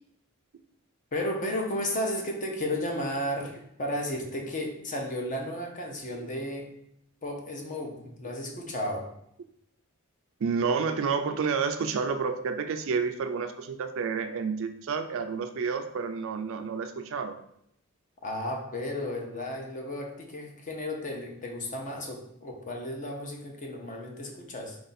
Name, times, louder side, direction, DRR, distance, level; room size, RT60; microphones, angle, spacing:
voice 1, 1.1-6.7 7.2-9.1 18.2-24.8, left 1 dB, 40° left, 1 dB, 0.8 m, -33 dB
voice 2, 10.4-17.4, right 5 dB, 65° right, 8 dB, 0.4 m, -30 dB
4.6 x 2.6 x 4.0 m, 0.75 s
head